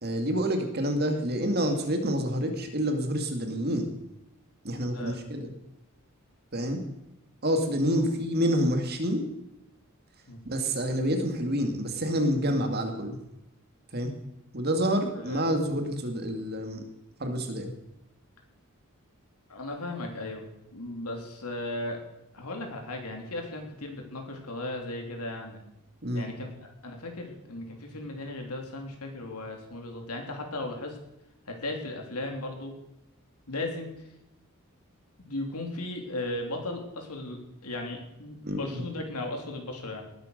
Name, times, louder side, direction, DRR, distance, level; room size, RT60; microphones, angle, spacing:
voice 1, 0.0-3.9 4.6-5.5 6.5-6.8 7.4-9.2 10.4-13.2 13.9-14.1 14.5-16.8 17.2-17.7 26.0-26.3 38.4-38.8, equal, 45° right, 5 dB, 2.3 m, -28 dB
voice 2, 4.8-5.2 7.9-8.1 10.3-10.4 15.1-15.5 19.5-22.0 22.3-25.6 26.1-31.0 31.5-32.7 33.5-33.9 35.2-40.0, left 2 dB, 90° left, 2 dB, 3.4 m, -36 dB
19.0 x 9.2 x 6.7 m, 0.87 s
head